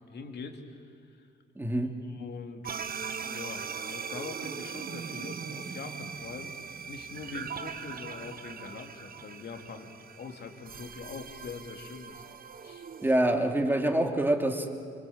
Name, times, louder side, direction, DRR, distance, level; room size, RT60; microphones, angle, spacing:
voice 1, 0.1-1.3 2.1-2.9 3.2-6.5 6.9-12.2 12.6-12.9, left 4 dB, 55° left, 4 dB, 3.1 m, -43 dB
voice 2, 1.6-1.9 13.0-14.7, right 1 dB, 10° right, 3 dB, 2.9 m, -26 dB
sound 1, 2.6-13.2, right 6 dB, 50° right, 1.5 m, -40 dB
25.5 x 24.5 x 8.9 m, 2.2 s
cardioid pair, 90°, 20 cm